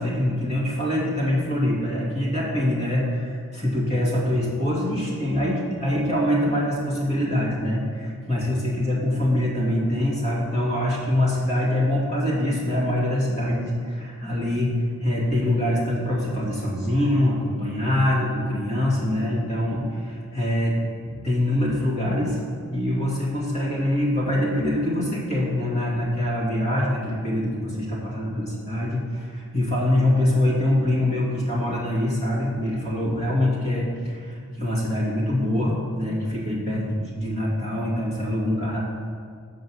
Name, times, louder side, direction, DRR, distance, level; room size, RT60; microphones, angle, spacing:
voice 1, 0.0-22.4 22.7-38.8, left 1 dB, 30° left, -5 dB, 2.4 m, -24 dB
7.7 x 5.4 x 6.2 m, 2.2 s
head